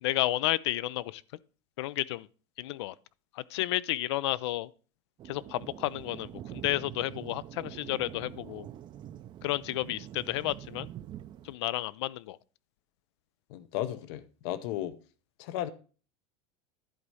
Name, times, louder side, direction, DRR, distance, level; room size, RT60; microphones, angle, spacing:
voice 1, 0.0-1.2 1.8-2.3 2.6-2.9 3.4-4.7 5.3-8.7 9.4-10.9 11.4-12.4, left 16 dB, 85° left, 0.4 m, -31 dB
Thunder, 5.2-11.6, right 12 dB, 35° right, 0.4 m, -45 dB
voice 2, 13.5-14.9 15.4-15.7, left 12 dB, 65° left, 0.8 m, -34 dB
11.0 x 4.1 x 4.8 m
supercardioid pair, 135°, 14 cm